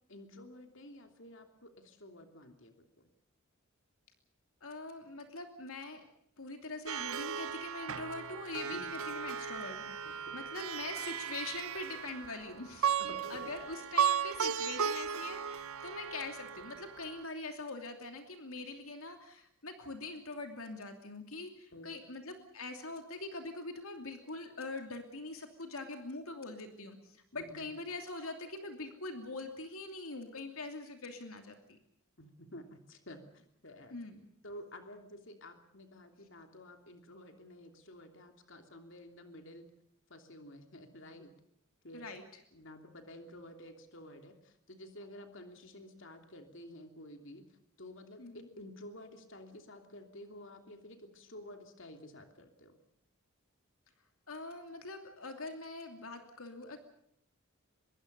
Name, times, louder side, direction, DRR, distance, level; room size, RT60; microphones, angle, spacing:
voice 1, 0.1-3.1 8.7-8.9 10.0-10.4 13.0-13.5 21.7-21.9 27.3-27.7 32.2-33.9 34.4-39.7 40.1-41.3 41.8-42.1 42.5-52.8, left 1 dB, 55° left, 5 dB, 3.0 m, -51 dB
voice 2, 4.6-6.0 6.4-31.8 33.9-34.3 41.9-42.2 48.2-48.5 54.3-56.8, left 3 dB, 75° left, 5 dB, 2.8 m, -43 dB
Plucked string instrument, 6.9-17.2, right 8 dB, 75° right, 0.9 m, -36 dB
24.5 x 22.5 x 6.8 m, 0.71 s
head